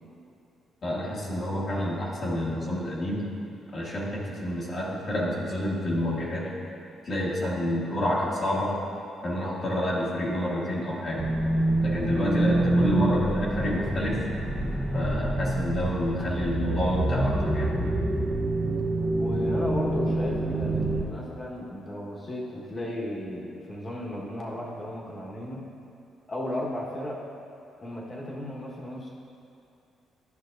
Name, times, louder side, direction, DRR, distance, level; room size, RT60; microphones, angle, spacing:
voice 1, 0.8-3.3 3.7-6.5 7.0-8.8 9.2-11.2 11.8-14.2 14.9-17.7, equal, 45° left, -5 dB, 1.4 m, -29 dB
sound 1, 11.2-21.0, right 1 dB, 10° right, 0.8 m, -26 dB
voice 2, 19.1-25.6 26.3-27.2 27.8-29.1, left 1 dB, 30° left, -3 dB, 1.4 m, -34 dB
11.0 x 5.7 x 2.6 m, 2.7 s
cardioid pair, 90°, 0 cm